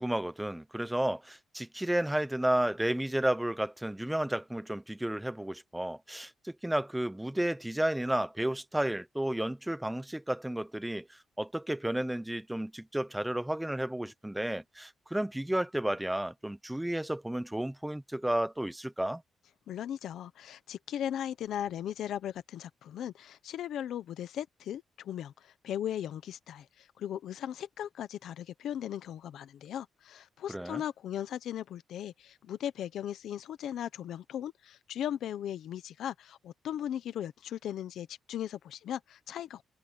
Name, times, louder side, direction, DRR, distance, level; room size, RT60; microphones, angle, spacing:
voice 1, 0.0-19.2 30.5-30.8, right 1 dB, 5° right, 0.7 m, -32 dB
voice 2, 19.7-39.6, left 10 dB, 80° left, 1.0 m, -38 dB
cardioid pair, 100°, 0 cm